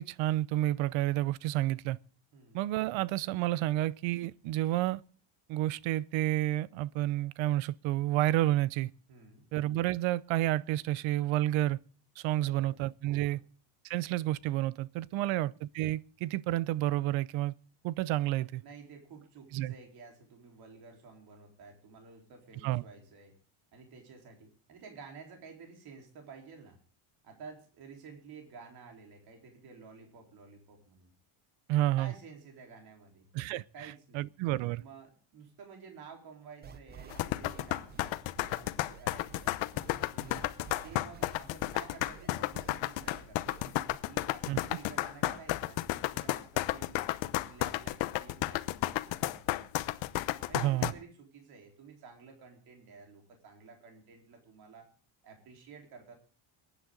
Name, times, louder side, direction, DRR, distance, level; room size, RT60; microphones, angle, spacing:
voice 1, 0.0-2.0 2.5-5.0 5.5-8.9 9.5-11.8 12.2-13.4 13.8-17.5 17.8-18.6 19.5-19.7 22.6-22.8 31.7-32.1 33.3-33.6 34.1-34.8 44.5-44.6 50.5-50.9, right 15 dB, 70° right, 0.7 m, -30 dB
voice 2, 2.3-2.6 9.1-9.4 12.3-12.8 13.1-13.4 15.1-15.4 18.6-23.3 23.7-26.8 27.2-31.1 32.0-33.3 33.7-34.3 34.8-39.5 40.1-40.5 40.8-43.6 44.0-49.8 50.5-54.9 55.2-56.1, right 5 dB, 50° right, 4.0 m, -52 dB
sound 1, 36.6-44.0, right 7 dB, 20° right, 0.6 m, -51 dB
sound 2, 37.1-50.9, left 16 dB, 65° left, 0.9 m, -32 dB
22.5 x 10.0 x 3.8 m
cardioid pair, 180°, 48 cm